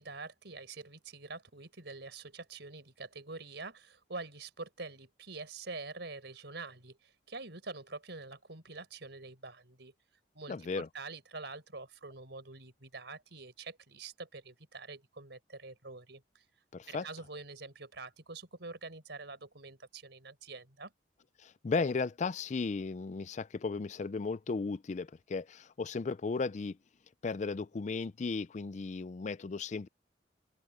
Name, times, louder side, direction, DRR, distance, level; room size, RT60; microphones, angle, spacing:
voice 1, 0.0-9.9 10.3-16.4 16.9-20.9, right 3 dB, 65° right, 4.7 m, -46 dB
voice 2, 10.5-10.9 16.7-17.1 21.4-26.8 27.2-29.9, left 4 dB, 40° left, 0.4 m, -35 dB
open air
head